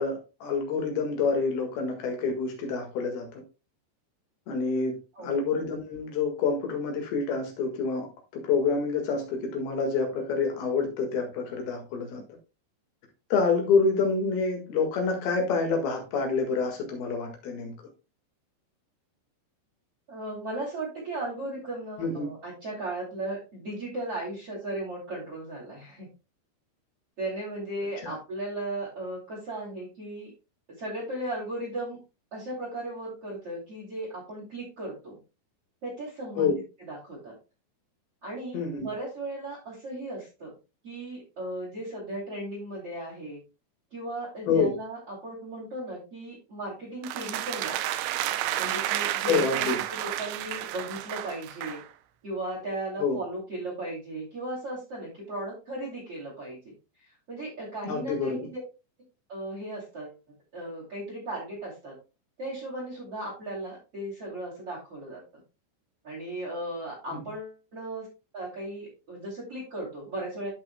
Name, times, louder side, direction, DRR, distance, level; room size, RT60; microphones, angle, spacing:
voice 1, 0.0-3.4 4.5-8.1 8.3-12.2 13.3-17.7 22.0-22.3 28.0-28.1 36.4-36.5 38.5-38.9 44.5-44.7 49.3-49.8 53.0-53.2 57.8-58.5 67.1-67.2, left 4 dB, 60° left, 3 dB, 3.2 m, -27 dB
voice 2, 5.1-5.5 20.1-26.1 27.2-30.3 30.8-32.0 32.3-35.2 35.8-36.6 36.9-37.3 38.2-40.5 40.8-43.4 43.9-47.9 48.6-51.8 52.2-56.7 57.3-58.6 59.3-60.2 60.5-62.0 62.4-65.4 66.0-68.1 68.3-70.5, right 1 dB, 35° right, -1 dB, 3.1 m, -36 dB
sound 1, 47.0-51.9, right 13 dB, 80° right, 2.8 m, -31 dB
14.0 x 5.5 x 2.2 m, 0.30 s
omnidirectional pair, 5.5 m